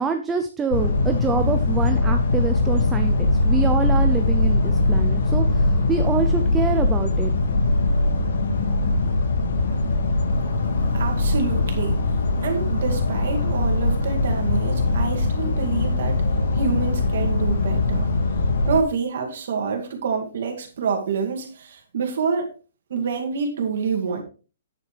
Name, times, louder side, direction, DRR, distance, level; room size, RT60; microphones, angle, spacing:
voice 1, 0.0-7.3, right 5 dB, 10° right, 6 dB, 0.5 m, -26 dB
sound 1, 0.7-18.8, left 2 dB, 70° left, 1.9 m, -21 dB
voice 2, 10.9-12.0 12.4-16.2 16.5-18.1 18.7-22.5 22.9-24.2, right 5 dB, 55° right, 4 dB, 2.3 m, -27 dB
9.6 x 9.2 x 3.3 m, 0.35 s
hypercardioid pair, 170°, 0 cm